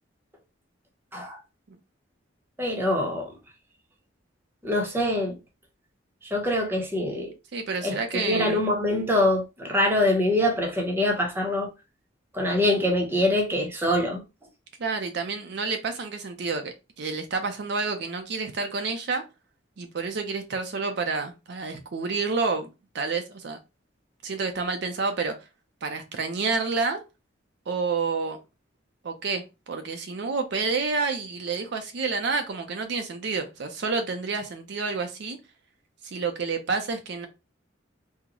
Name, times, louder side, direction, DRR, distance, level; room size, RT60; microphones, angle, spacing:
voice 1, 2.6-3.3 4.6-5.4 6.3-7.3 7.8-8.0 8.2-11.7 12.3-14.2, left 1 dB, 10° right, 0.7 m, -24 dB
voice 2, 7.5-8.6 14.8-19.2 19.8-22.7 22.9-23.6 24.2-25.3 25.8-27.0 27.7-28.4 29.0-35.4 36.0-37.3, right 4 dB, 60° right, 0.5 m, -29 dB
3.7 x 2.1 x 2.9 m
head